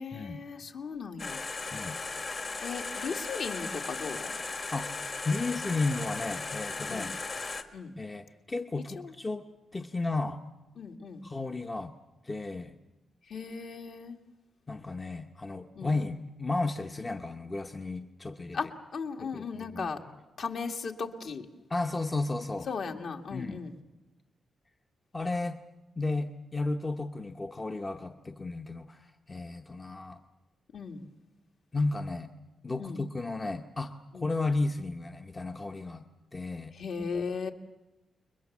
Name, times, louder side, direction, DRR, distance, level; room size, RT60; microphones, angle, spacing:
voice 1, 0.0-1.4 2.6-4.3 6.9-7.1 7.7-7.9 9.0-9.1 10.8-11.3 13.3-14.2 15.8-15.9 18.5-20.0 20.4-21.4 22.7-23.7 30.7-31.1 32.8-33.0 34.1-34.2 36.7-37.5, left 5 dB, 55° left, 3 dB, 1.9 m, -37 dB
sound 1, 1.2-7.6, left 3 dB, 35° left, 1.5 m, -37 dB
voice 2, 4.7-7.1 8.0-9.5 9.7-10.4 11.2-11.9 12.2-12.8 14.7-18.6 19.2-19.9 21.7-22.7 23.3-23.6 25.1-25.6 26.0-30.2 31.7-32.3 32.6-36.0 36.3-36.7, left 3 dB, 20° left, 5 dB, 0.8 m, -33 dB
29.0 x 22.0 x 7.2 m, 1.0 s
wide cardioid pair, 165°, 0 cm